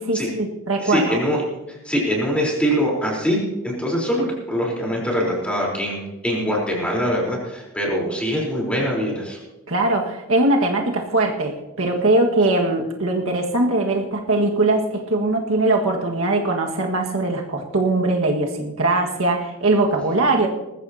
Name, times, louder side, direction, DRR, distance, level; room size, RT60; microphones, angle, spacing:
voice 1, 0.0-1.2 9.7-20.5, right 2 dB, 75° right, 1 dB, 1.8 m, -21 dB
voice 2, 0.8-1.4 1.7-9.4, equal, 5° left, -3 dB, 4.0 m, -23 dB
20.5 x 14.5 x 2.9 m, 1.0 s
head